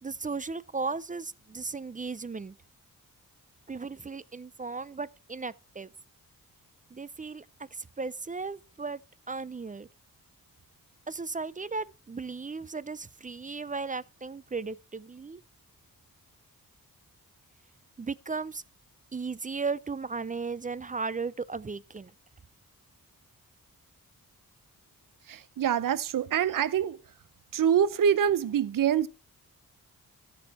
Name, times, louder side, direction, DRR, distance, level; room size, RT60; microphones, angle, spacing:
voice 1, 0.0-2.5 3.7-5.9 6.9-7.5 7.7-9.0 9.3-9.9 11.1-15.4 18.0-18.6 19.1-22.1, right 4 dB, 25° right, 0.4 m, -36 dB
voice 2, 25.3-27.0 27.5-29.1, right 8 dB, 65° right, 0.7 m, -25 dB
13.5 x 6.2 x 4.1 m
wide cardioid pair, 85°, 35 cm